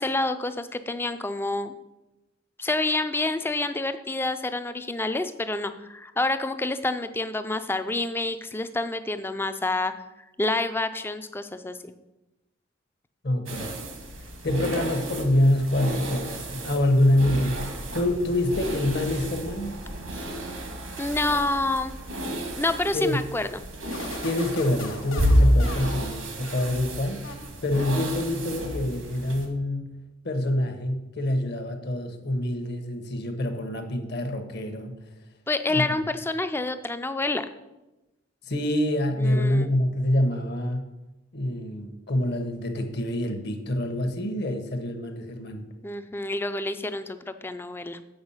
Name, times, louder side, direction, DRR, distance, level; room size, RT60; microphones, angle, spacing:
voice 1, 0.0-1.7 2.6-9.9 10.4-11.9 20.1-20.3 21.0-21.9 22.6-23.6 35.5-37.5 39.2-39.7 45.8-48.0, left 2 dB, 10° left, 11 dB, 0.3 m, -28 dB
voice 2, 13.2-13.8 14.4-19.8 22.9-23.2 24.2-27.3 27.6-30.0 30.2-34.9 35.7-36.0 38.5-40.9 41.3-45.7, left 1 dB, 55° left, 7 dB, 1.0 m, -26 dB
sound 1, 13.5-29.5, equal, 85° right, 1.5 m, -30 dB
sound 2, 23.9-26.9 27.2-27.9, left 3 dB, 75° left, 1.1 m, -40 dB
7.8 x 4.7 x 5.5 m, 1.0 s
head